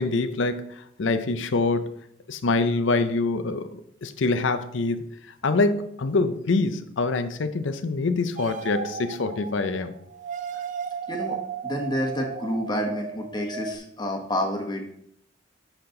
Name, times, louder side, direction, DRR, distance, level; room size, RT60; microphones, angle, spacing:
voice 1, 0.0-1.9 2.3-5.0 5.4-9.9, left 3 dB, 75° left, 10 dB, 0.6 m, -25 dB
sound 1, 8.4-13.8, right 6 dB, 40° right, 0.4 m, -35 dB
voice 2, 11.1-14.9, equal, 20° left, 2 dB, 1.2 m, -29 dB
8.0 x 5.8 x 3.8 m, 0.70 s
head